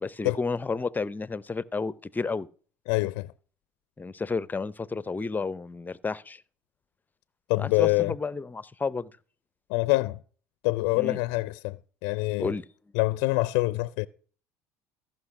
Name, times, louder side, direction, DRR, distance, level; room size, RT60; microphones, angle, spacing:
voice 1, 0.0-2.5 4.0-6.4 7.6-9.1 10.9-11.2 12.4-12.6, left 4 dB, 20° left, 0.6 m, -31 dB
voice 2, 2.9-3.3 7.5-8.1 9.7-10.2 10.6-11.8 12.0-12.5 12.9-14.1, left 22 dB, 75° left, 0.4 m, -25 dB
14.5 x 5.9 x 5.9 m
hypercardioid pair, 70°, 9 cm